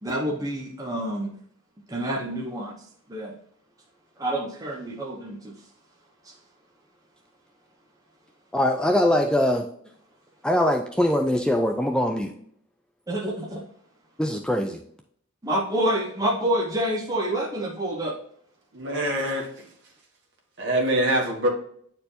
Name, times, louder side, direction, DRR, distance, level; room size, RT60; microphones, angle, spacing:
voice 1, 0.0-1.3 1.9-2.7 3.1-3.3 4.2-5.5 13.1-13.6 15.4-18.1, right 1 dB, 15° right, -1 dB, 0.7 m, -27 dB
voice 2, 8.5-9.7 10.4-12.3 14.2-14.8, left 1 dB, 5° left, 3 dB, 0.4 m, -22 dB
voice 3, 18.7-19.7 20.6-21.5, right 1 dB, 55° right, 0 dB, 1.8 m, -24 dB
9.4 x 4.4 x 2.7 m, 0.64 s
head